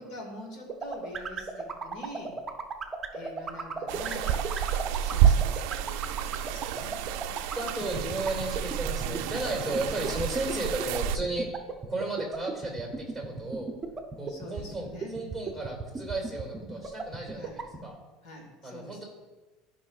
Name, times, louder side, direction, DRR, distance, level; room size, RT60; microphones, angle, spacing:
voice 1, 0.0-2.4 3.1-4.4 5.0-7.0 9.0-10.2 14.3-15.2 17.3-17.6 18.2-19.0, left 1 dB, 60° left, 2 dB, 1.9 m, -44 dB
sound 1, 0.7-17.8, right 5 dB, 20° right, 0.7 m, -33 dB
sound 2, 3.9-11.2, right 9 dB, 70° right, 0.3 m, -29 dB
voice 2, 7.3-11.5 11.9-13.7 14.2-18.0 18.6-19.0, right 2 dB, 5° left, -1 dB, 2.3 m, -34 dB
13.5 x 5.4 x 2.4 m, 1.2 s
cardioid pair, 150°, 0 cm